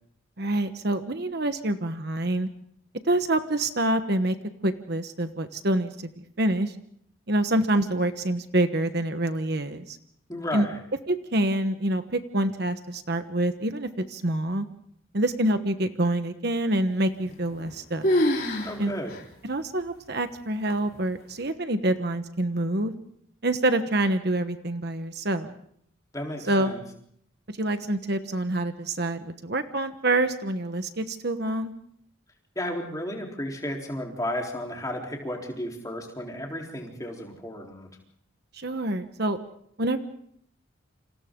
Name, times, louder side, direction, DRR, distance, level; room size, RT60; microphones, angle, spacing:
voice 1, 0.4-2.5 3.0-4.3 4.6-5.9 6.4-6.7 7.3-10.0 10.5-10.7 11.1-14.6 15.1-18.1 18.8-18.9 19.4-22.9 23.4-25.5 26.5-26.7 27.6-31.7 38.5-39.4 39.8-40.0, right 1 dB, 50° right, 8 dB, 1.2 m, -26 dB
voice 2, 10.3-10.8 18.6-19.2 26.1-26.8 32.6-37.9, left 1 dB, 15° left, 0 dB, 3.8 m, -33 dB
sound 1, 17.3-17.8 18.0-18.8 19.1-19.2 19.9-20.0 20.7-21.1, left 1 dB, 45° left, 4.1 m, -25 dB
29.0 x 27.5 x 3.8 m, 0.68 s
head